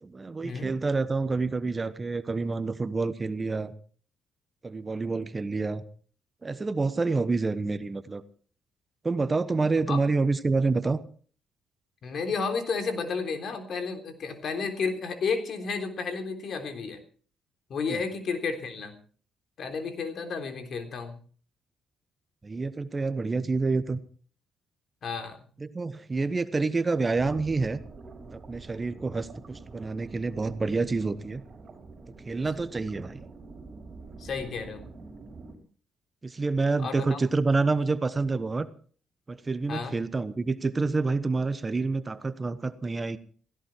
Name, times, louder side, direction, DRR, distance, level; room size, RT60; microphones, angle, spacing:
voice 1, 0.0-3.7 4.6-5.8 6.4-8.2 9.0-11.0 17.9-18.0 22.4-24.0 25.6-27.8 28.3-31.4 32.2-33.2 36.2-38.7 39.3-43.2, right 3 dB, 25° right, 13 dB, 1.1 m, -28 dB
voice 2, 12.0-17.0 17.7-18.9 19.6-21.2 25.0-25.4 34.2-34.8 36.8-37.2 39.7-40.0, left 5 dB, 60° left, 6 dB, 3.5 m, -32 dB
sound 1, 27.1-35.6, right 3 dB, 40° right, 5.4 m, -46 dB
16.5 x 16.5 x 4.6 m, 0.43 s
cardioid pair, 90°, 0 cm